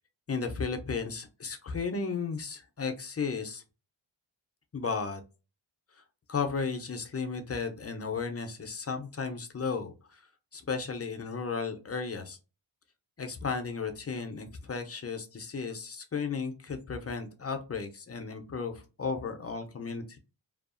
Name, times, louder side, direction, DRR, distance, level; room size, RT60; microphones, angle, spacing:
voice 1, 0.3-3.6 4.7-5.2 6.3-10.2 10.5-12.4 13.2-20.2, left 5 dB, 35° left, 6 dB, 0.4 m, -34 dB
2.7 x 2.3 x 2.4 m, 0.31 s
wide cardioid pair, 95°, 46 cm